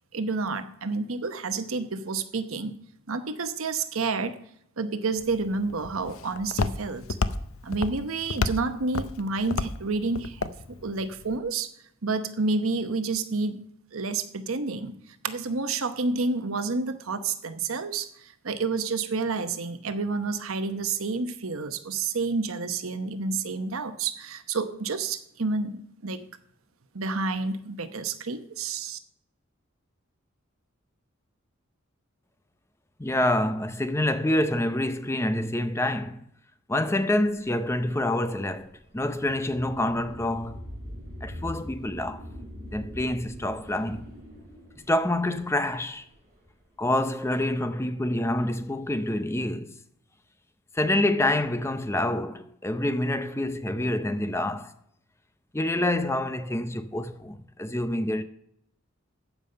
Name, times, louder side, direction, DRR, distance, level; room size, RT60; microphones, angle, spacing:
voice 1, 0.1-2.8 3.1-4.4 4.8-7.1 7.6-11.7 12.0-13.6 13.9-14.9 15.2-26.2 26.9-29.0, right 3 dB, 85° right, 0.9 m, -29 dB
Walk footsteps, 5.2-11.4, left 4 dB, 85° left, 0.6 m, -32 dB
voice 2, 33.0-36.3 36.7-40.6 41.2-42.2 42.7-44.1 44.9-46.1 46.8-49.8 50.7-54.7 55.5-58.2, left 1 dB, 15° left, 0.5 m, -27 dB
sound 1, 37.4-46.4, equal, 20° right, 3.4 m, -42 dB
14.5 x 5.4 x 5.4 m
head